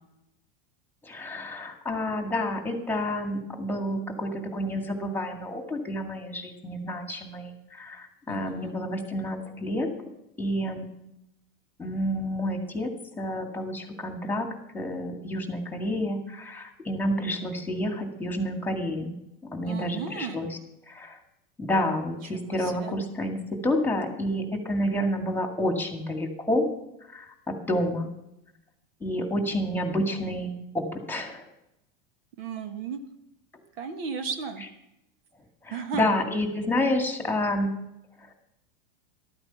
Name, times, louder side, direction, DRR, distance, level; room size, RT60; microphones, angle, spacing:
voice 1, 1.0-9.9 10.4-10.9 11.8-12.9 13.2-14.5 14.7-19.1 19.5-20.6 20.9-21.2 21.6-26.7 27.1-28.1 29.0-31.4 35.6-37.7, left 1 dB, 5° left, 4 dB, 1.9 m, -29 dB
voice 2, 8.3-8.7 19.6-20.4 22.3-22.9 32.4-33.0 33.8-34.6 35.7-36.1, right 6 dB, 75° right, 8 dB, 1.5 m, -34 dB
13.0 x 8.9 x 5.6 m, 0.86 s
supercardioid pair, 120°, 29 cm